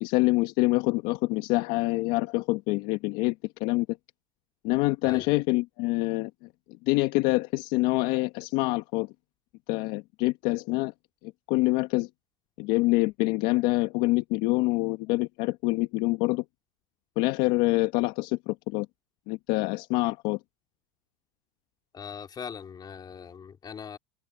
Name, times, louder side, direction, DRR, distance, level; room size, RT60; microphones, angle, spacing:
voice 1, 0.0-3.3 3.6-3.9 4.6-6.3 6.9-9.1 9.7-10.9 11.2-12.1 12.6-16.4 17.2-18.9 19.3-20.4, left 21 dB, 60° left, 1.3 m, -26 dB
voice 2, 21.9-24.0, left 7 dB, 25° left, 4.0 m, -40 dB
supercardioid pair, 140°, 18 cm